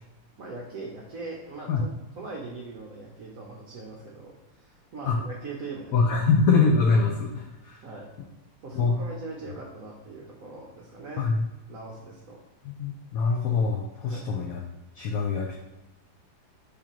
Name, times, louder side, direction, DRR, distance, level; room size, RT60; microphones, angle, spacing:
voice 1, 0.4-1.9 2.2-6.1 7.8-8.1 8.6-11.3 11.7-12.4 14.1-14.3, right 3 dB, 65° right, -1 dB, 0.8 m, -41 dB
voice 2, 5.9-7.8 8.7-9.0 11.2-11.4 12.6-14.6 14.9-15.6, left 4 dB, 80° left, 0 dB, 0.7 m, -24 dB
5.0 x 3.6 x 2.9 m, 1.1 s
omnidirectional pair, 2.1 m